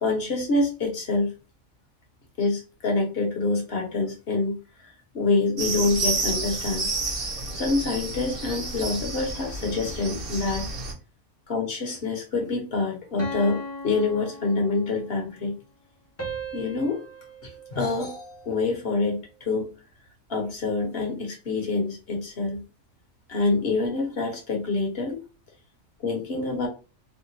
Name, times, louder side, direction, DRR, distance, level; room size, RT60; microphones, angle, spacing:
voice 1, 0.0-1.3 2.4-4.6 5.1-6.9 7.5-10.7 11.5-15.5 16.5-17.0 17.7-19.7 20.3-22.6 23.3-25.2 26.0-26.7, left 3 dB, 50° left, 1 dB, 1.1 m, -26 dB
sound 1, 5.6-10.9, right 3 dB, 50° right, 1.0 m, -30 dB
sound 2, 13.2-15.1 16.2-18.6, right 1 dB, 15° left, 0.6 m, -38 dB
3.6 x 2.2 x 2.7 m, 0.32 s
omnidirectional pair, 1.3 m